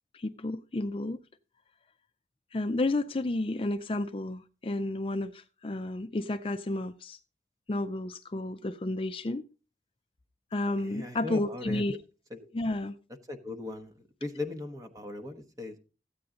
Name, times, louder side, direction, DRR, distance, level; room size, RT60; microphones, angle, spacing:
voice 1, 0.1-1.2 2.5-7.2 7.7-9.4 10.5-12.0 12.5-12.9, left 2 dB, 30° left, 0.4 m, -31 dB
voice 2, 10.8-11.8 12.3-12.5 13.3-15.8, left 2 dB, 20° right, 1.2 m, -38 dB
14.0 x 8.7 x 3.8 m
head